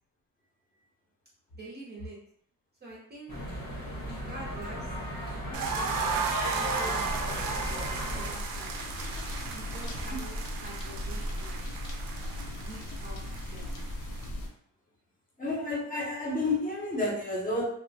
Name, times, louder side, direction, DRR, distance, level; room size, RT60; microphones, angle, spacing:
voice 1, 1.5-2.2 2.8-3.3 4.0-4.9 5.3-5.9 6.5-7.5 7.8-8.9 9.5-11.6 12.5-13.8, right 1 dB, 30° right, -4 dB, 0.5 m, -46 dB
sound 1, 3.3-8.3, equal, 90° left, 1.2 m, -36 dB
sound 2, 5.5-14.3, right 5 dB, 85° right, 0.5 m, -35 dB
sound 3, 7.0-14.5, left 1 dB, 60° left, 0.6 m, -37 dB
voice 2, 15.4-17.7, left 2 dB, 25° left, -2 dB, 0.6 m, -30 dB
2.8 x 2.0 x 2.6 m, 0.70 s
wide cardioid pair, 165°, 34 cm